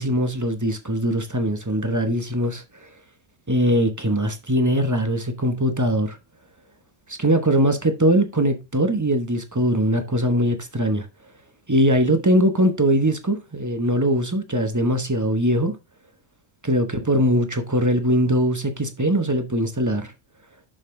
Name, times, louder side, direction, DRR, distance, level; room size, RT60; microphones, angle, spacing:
voice 1, 0.0-2.6 3.5-6.2 7.1-11.1 11.7-15.8 16.6-20.1, equal, 20° right, 1.0 m, -21 dB
6.7 x 6.4 x 3.7 m
omnidirectional pair, 1.1 m